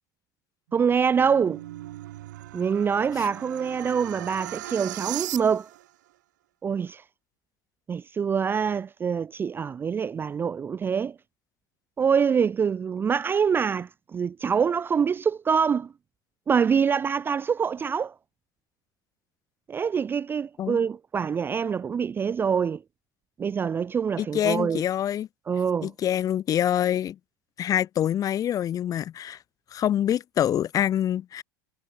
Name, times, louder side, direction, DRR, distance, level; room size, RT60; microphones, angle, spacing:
voice 1, 0.7-1.6 2.5-5.7 6.6-7.0 7.9-11.2 12.0-15.9 16.5-18.1 19.7-22.8 23.4-24.8 25.5-25.9, right 6 dB, 20° right, 0.5 m, -25 dB
sound 1, 0.7-5.9, right 15 dB, 65° right, 1.7 m, -38 dB
voice 2, 24.2-25.3 25.8-27.2 27.6-29.4 29.7-31.4, left 10 dB, 35° left, 1.8 m, -25 dB
figure-of-eight pair, 75°, 11 cm